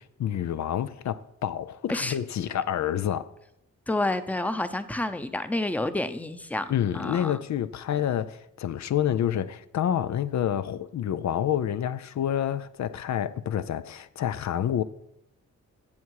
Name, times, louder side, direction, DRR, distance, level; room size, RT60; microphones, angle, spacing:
voice 1, 0.0-3.3 6.7-14.8, left 10 dB, 70° left, 0.5 m, -28 dB
voice 2, 3.9-7.3, left 2 dB, 5° left, 0.7 m, -29 dB
15.5 x 7.1 x 4.8 m
wide cardioid pair, 105°, 29 cm